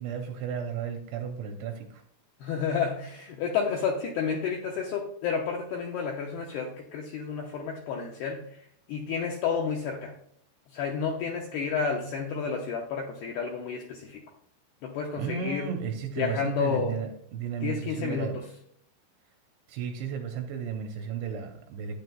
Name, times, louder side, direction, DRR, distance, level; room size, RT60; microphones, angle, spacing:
voice 1, 0.0-2.0 15.2-18.4 19.7-22.0, right 7 dB, 85° right, 4 dB, 2.7 m, -34 dB
voice 2, 2.4-8.6 8.9-10.1 10.7-14.2 14.8-15.7 16.2-17.0 17.6-18.4, left 6 dB, 85° left, 1 dB, 2.3 m, -31 dB
12.5 x 9.3 x 2.2 m, 0.66 s
omnidirectional pair, 5.7 m